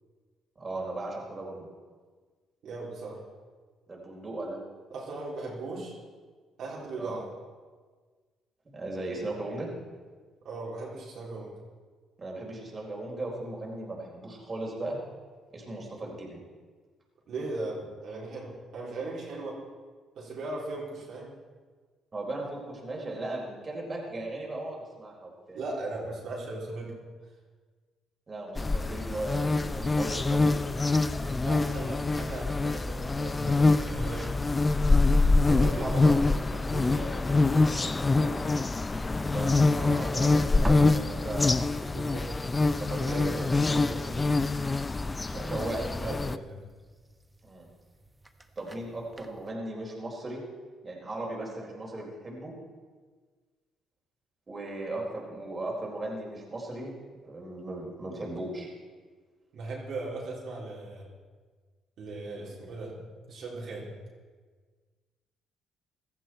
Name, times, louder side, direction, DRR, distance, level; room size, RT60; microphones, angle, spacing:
voice 1, 0.6-1.7 3.9-4.6 7.0-7.1 8.6-9.7 12.2-15.0 15.5-16.4 22.1-25.6 28.3-30.7 35.5-36.2 39.2-41.6 42.8-43.5 45.4-45.8 47.4-47.7 48.6-50.4 50.8-52.5 54.5-56.9 57.2-58.7, right 2 dB, 30° right, -2 dB, 4.0 m, -37 dB
voice 2, 2.6-3.2 4.9-6.0 6.6-7.3 10.4-11.6 17.3-19.6 20.2-21.3 25.5-27.0 31.3-34.3 35.1-35.2 35.5-36.2 36.5-38.7 41.9-42.6 43.0-44.3 45.2-46.6 59.5-61.1 62.0-63.0 63.3-63.9, right 2 dB, 65° right, -4 dB, 3.9 m, -38 dB
sound 1, 28.6-46.4, left 3 dB, 20° left, 0.5 m, -25 dB
sound 2, 33.5-49.5, right 1 dB, 15° right, 1.2 m, -50 dB
16.0 x 13.5 x 4.5 m, 1.5 s
cardioid pair, 85°, 0 cm